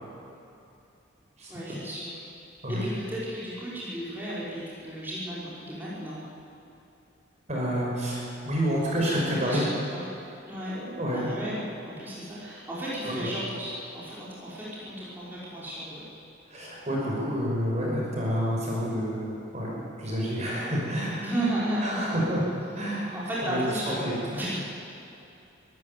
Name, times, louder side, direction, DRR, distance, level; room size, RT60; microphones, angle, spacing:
voice 1, 1.5-2.2 2.7-6.2 9.0-10.1 10.5-10.7 11.1-16.0 21.2-22.2 23.1-24.0 24.3-24.6, right 1 dB, 10° right, -9 dB, 5.1 m, -34 dB
voice 2, 7.5-9.6 10.7-11.3 13.0-13.3 16.5-21.2 21.8-22.4 22.7-23.1 23.4-23.6 24.0-24.6, equal, 35° right, -4 dB, 5.7 m, -29 dB
23.0 x 14.0 x 8.3 m, 2.8 s
head